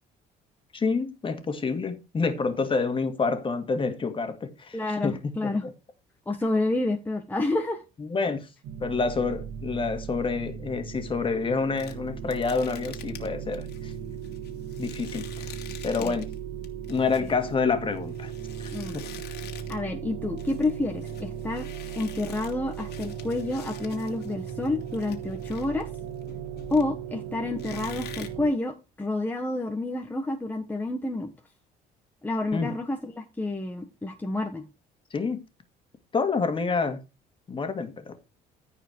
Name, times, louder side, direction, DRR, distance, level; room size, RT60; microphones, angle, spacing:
voice 1, 0.7-4.8 5.0-5.5 8.0-8.5 8.8-13.9 14.8-15.5 15.8-16.3 16.9-18.3 18.6-19.1 32.5-32.7 35.1-35.4 36.1-37.0 37.5-38.2, left 4 dB, 30° left, 2.2 m, -28 dB
voice 2, 4.7-5.7 6.3-7.8 16.0-16.2 18.7-19.0 19.7-21.7 21.9-25.9 26.7-31.3 32.2-34.6, left 2 dB, 10° left, 1.4 m, -29 dB
sound 1, 8.6-28.5, right 8 dB, 75° right, 1.7 m, -37 dB
sound 2, 11.8-16.4 16.6-19.9 20.2-27.1 27.6-28.3, left 10 dB, 75° left, 2.5 m, -47 dB
14.5 x 5.0 x 4.6 m
cardioid pair, 110°, 17 cm